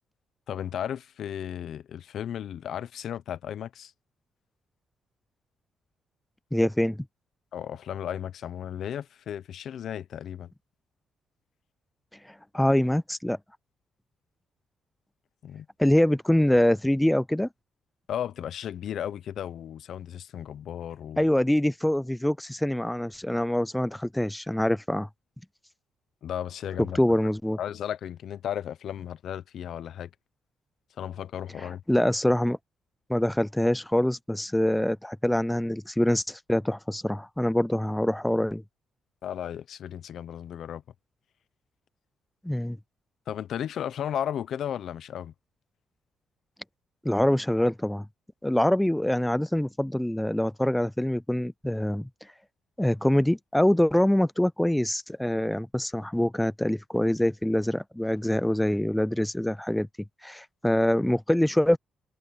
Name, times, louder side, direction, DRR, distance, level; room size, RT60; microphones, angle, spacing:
voice 1, 0.5-3.9 7.5-10.5 15.4-15.7 18.1-21.3 26.2-27.0 27.6-30.1 31.0-31.8 39.2-40.8 43.3-45.3, left 10 dB, 70° left, 1.0 m, -34 dB
voice 2, 6.5-7.0 12.2-13.4 15.8-17.5 21.2-25.1 26.9-27.6 31.6-32.6 33.1-38.6 42.4-42.8 47.0-48.1 48.4-52.1 52.8-59.9 60.2-61.8, left 1 dB, 5° left, 0.4 m, -25 dB
cardioid pair, 90°, 0 cm